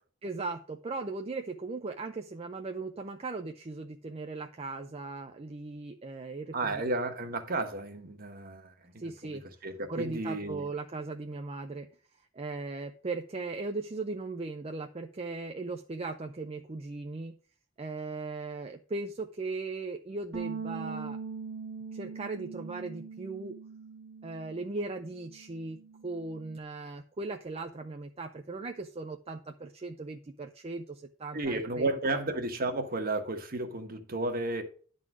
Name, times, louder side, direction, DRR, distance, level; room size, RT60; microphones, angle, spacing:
voice 1, 0.2-6.8 9.0-9.4 9.9-11.9 12.3-17.4 17.8-21.2 21.9-23.6 24.2-32.2, right 3 dB, 30° right, 0.5 m, -38 dB
voice 2, 6.5-10.7 31.3-34.6, right 2 dB, 50° right, 1.2 m, -33 dB
Bass guitar, 20.3-26.6, right 5 dB, 65° right, 1.5 m, -42 dB
10.5 x 3.9 x 6.0 m
head